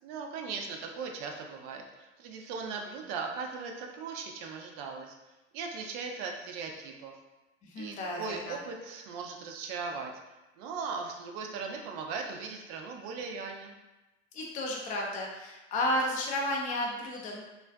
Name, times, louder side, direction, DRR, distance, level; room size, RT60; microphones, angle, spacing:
voice 1, 0.0-5.2 5.5-7.1 7.8-10.1 10.6-13.7, right 5 dB, 50° right, 2 dB, 0.5 m, -38 dB
voice 2, 7.6-8.6 14.3-17.4, left 1 dB, 20° left, -1 dB, 0.4 m, -32 dB
2.4 x 2.2 x 2.3 m, 1.0 s
hypercardioid pair, 80°, 38 cm